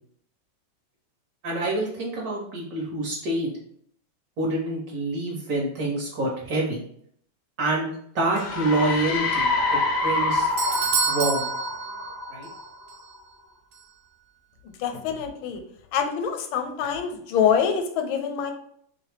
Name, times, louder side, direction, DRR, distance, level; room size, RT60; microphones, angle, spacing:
voice 1, 1.4-3.5 4.4-6.8 7.6-7.9 8.1-10.5 11.1-11.5 12.3-12.5, right 2 dB, 60° right, -2 dB, 1.0 m, -27 dB
sound 1, 8.4-12.9, left 3 dB, 65° left, 0.8 m, -26 dB
Doorbell, 10.1-12.6 12.9-13.0 13.7-13.8, right 5 dB, 80° right, 0.8 m, -28 dB
voice 2, 14.6-15.6 15.9-18.5, left 7 dB, 85° left, 6 dB, 1.4 m, -25 dB
3.1 x 3.0 x 3.3 m, 0.67 s
omnidirectional pair, 2.1 m